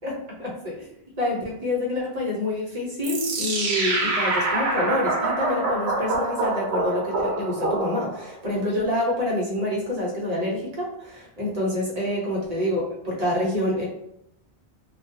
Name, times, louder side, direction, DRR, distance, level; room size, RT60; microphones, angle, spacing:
voice 1, 0.0-0.9 1.2-13.8, left 1 dB, 40° right, -3 dB, 0.8 m, -27 dB
sound 1, 3.0-8.3, right 2 dB, 75° right, 0.8 m, -25 dB
2.3 x 2.2 x 2.7 m, 0.78 s
omnidirectional pair, 1.1 m